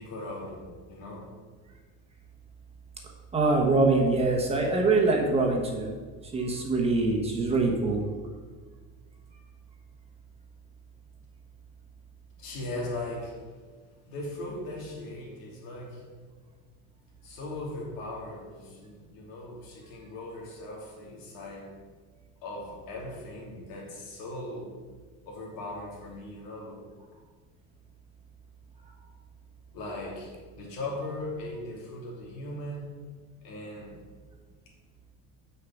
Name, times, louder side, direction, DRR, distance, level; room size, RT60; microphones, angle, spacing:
voice 1, 0.0-1.3 12.4-13.5 14.1-16.2 17.2-21.8 22.4-24.7 25.3-26.8 29.7-32.9 33.4-34.0, left 1 dB, 85° left, -2 dB, 2.9 m, -39 dB
voice 2, 3.3-5.9 6.3-8.0, right 3 dB, 15° right, 0 dB, 1.2 m, -24 dB
6.7 x 5.7 x 7.2 m, 1.5 s
cardioid pair, 160°, 36 cm